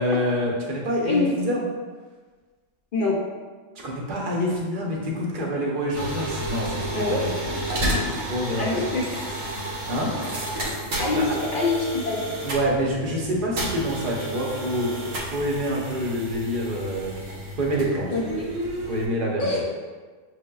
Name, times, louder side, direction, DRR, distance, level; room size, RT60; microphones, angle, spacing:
voice 1, 0.0-1.6 3.8-7.4 8.0-8.7 9.9-10.1 11.1-11.2 12.4-17.1 17.6-18.1 18.9-19.7, equal, 50° right, -2 dB, 0.7 m, -27 dB
sound 1, 5.9-19.1, right 1 dB, 80° right, 1.1 m, -31 dB
voice 2, 8.6-9.2 11.0-12.2 18.1-18.3 19.4-19.7, left 3 dB, 60° left, -3 dB, 0.5 m, -25 dB
6.3 x 2.1 x 2.2 m, 1.4 s
omnidirectional pair, 1.4 m